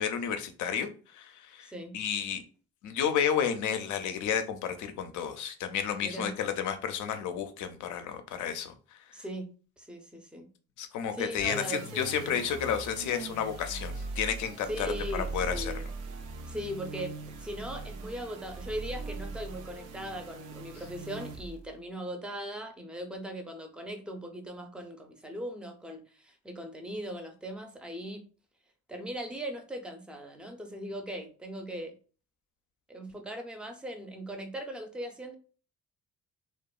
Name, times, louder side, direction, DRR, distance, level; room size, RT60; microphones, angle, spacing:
voice 1, 0.0-2.4 2.8-8.7 10.8-14.9 15.1-15.7, left 8 dB, 75° left, 0.5 m, -31 dB
voice 2, 1.6-2.0 6.0-6.4 9.1-9.5 9.8-10.5 11.1-12.4 13.0-13.1 14.7-15.9 16.5-28.2 28.9-31.9 32.9-35.4, equal, 5° right, 0.4 m, -39 dB
sound 1, 11.3-21.8, right 3 dB, 90° right, 0.5 m, -40 dB
2.8 x 2.2 x 2.3 m
cardioid pair, 90°, 30 cm